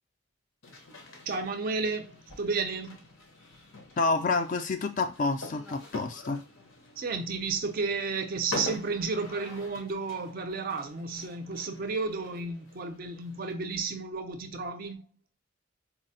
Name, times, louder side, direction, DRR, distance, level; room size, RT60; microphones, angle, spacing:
sound 1, 0.6-13.5, left 2 dB, 75° left, 0.8 m, -45 dB
voice 1, 1.3-3.0 7.0-15.1, right 4 dB, 45° right, 0.4 m, -32 dB
voice 2, 4.0-6.4, left 3 dB, 40° left, 0.3 m, -28 dB
3.8 x 2.0 x 2.7 m
head